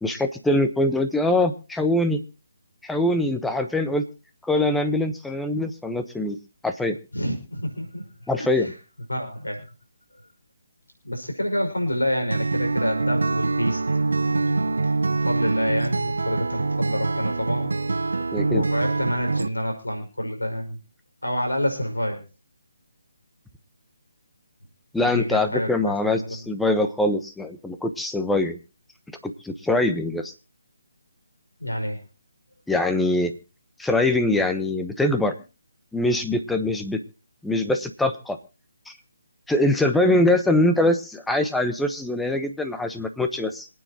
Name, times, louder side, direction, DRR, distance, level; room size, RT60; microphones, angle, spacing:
voice 1, 0.0-2.2 2.8-4.0 4.4-6.4 6.6-7.0 8.3-8.7 18.3-18.6 24.9-28.6 29.2-30.3 32.7-33.4 33.8-35.3 35.9-37.0 37.4-38.4 38.9-39.0 39.5-43.7, left 1 dB, 5° left, 7 dB, 1.1 m, -23 dB
voice 2, 7.1-8.7 9.1-9.7 11.0-14.8 15.1-17.7 18.0-18.1 18.5-20.8 21.2-22.2 25.0-26.4 31.6-32.0, equal, 90° left, 4 dB, 5.5 m, -28 dB
Acoustic guitar, 12.3-19.5, right 3 dB, 75° right, 0.8 m, -24 dB
26.5 x 9.2 x 3.0 m, 0.32 s
figure-of-eight pair, 150°, 0 cm